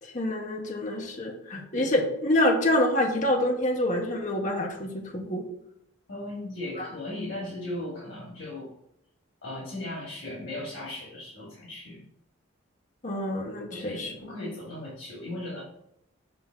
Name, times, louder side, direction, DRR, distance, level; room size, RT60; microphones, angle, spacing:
voice 1, 0.0-5.4 6.7-6.9 13.0-14.1, left 1 dB, 35° left, 1 dB, 0.9 m, -27 dB
voice 2, 6.1-8.7 9.4-12.0 13.7-15.6, left 1 dB, 85° left, -6 dB, 2.3 m, -37 dB
7.6 x 2.7 x 5.9 m, 0.79 s
head